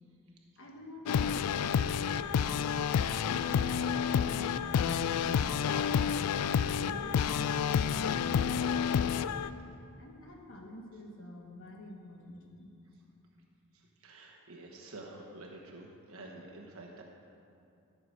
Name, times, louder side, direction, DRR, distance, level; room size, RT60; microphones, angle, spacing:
voice 1, 0.6-3.7 10.0-12.7, left 1 dB, 60° left, 1 dB, 1.4 m, -49 dB
sound 1, 1.1-9.5, left 7 dB, 90° left, 0.3 m, -29 dB
voice 2, 13.7-17.0, right 2 dB, 65° right, -1 dB, 1.2 m, -49 dB
14.0 x 6.8 x 4.7 m, 2.6 s
head